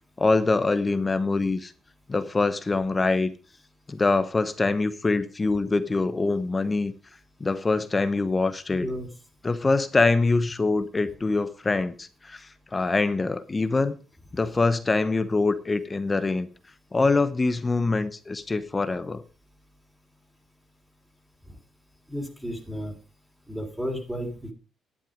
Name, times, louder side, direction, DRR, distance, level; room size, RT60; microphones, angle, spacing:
voice 1, 0.2-1.7 2.1-3.3 3.9-6.9 7.4-8.8 9.4-14.0 14.3-16.5 16.9-19.2, left 3 dB, 25° left, 0.9 m, -24 dB
voice 2, 8.7-9.1 21.5-21.6 22.1-22.9 23.5-24.5, equal, 5° right, 3.3 m, -33 dB
11.0 x 9.0 x 5.1 m
cardioid pair, 90°, 0 cm